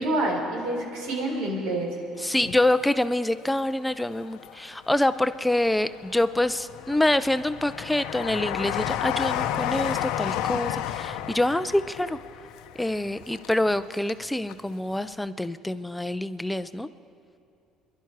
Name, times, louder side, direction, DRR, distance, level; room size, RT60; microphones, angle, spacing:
voice 1, 0.0-1.9, right 1 dB, 85° right, -1 dB, 4.2 m, -27 dB
voice 2, 2.2-12.2 12.8-16.9, left 1 dB, 5° left, 12 dB, 0.3 m, -26 dB
Train, 2.3-3.5 4.0-5.0 5.5-14.2 14.5-14.6, left 11 dB, 90° left, 0.6 m, -32 dB
26.5 x 11.5 x 4.7 m, 2.5 s
cardioid pair, 145°, 0 cm